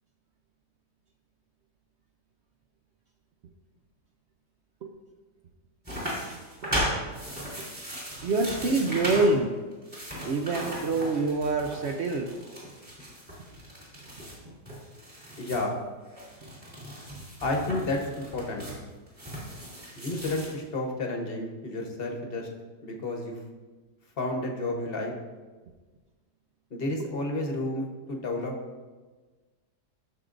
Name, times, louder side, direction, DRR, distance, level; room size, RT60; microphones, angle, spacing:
sound 1, 5.8-9.4 9.7-15.6 16.1-20.6, equal, 25° right, 2.9 m, -37 dB
voice 1, 8.2-9.7 10.2-12.3, right 3 dB, 70° right, 3 dB, 0.6 m, -26 dB
voice 2, 15.4-15.7 17.4-18.7 20.0-22.5 22.8-23.4 24.2-25.1 26.7-28.6, left 2 dB, 40° left, 1 dB, 1.0 m, -31 dB
12.5 x 6.5 x 2.5 m, 1.3 s
omnidirectional pair, 1.8 m